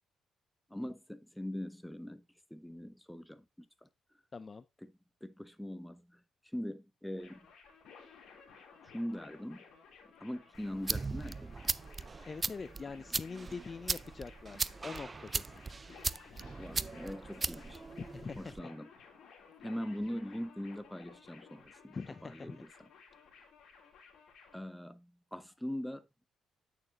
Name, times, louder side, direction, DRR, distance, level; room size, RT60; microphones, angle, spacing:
voice 1, 0.7-3.9 4.8-4.9 5.2-7.5 8.8-9.6 10.2-11.7 16.6-17.8 18.4-18.9 19.6-22.0 22.2-22.9 24.5-26.1, equal, 5° left, 0.8 m, -42 dB
voice 2, 4.3-4.6 12.3-15.5 18.0-18.4 21.9-22.6, left 4 dB, 35° left, 0.4 m, -44 dB
sound 1, 7.2-24.6, left 5 dB, 75° left, 3.2 m, -57 dB
sound 2, 10.5-18.6, right 4 dB, 30° right, 0.3 m, -38 dB
8.7 x 6.5 x 2.8 m
cardioid pair, 90°, 0 cm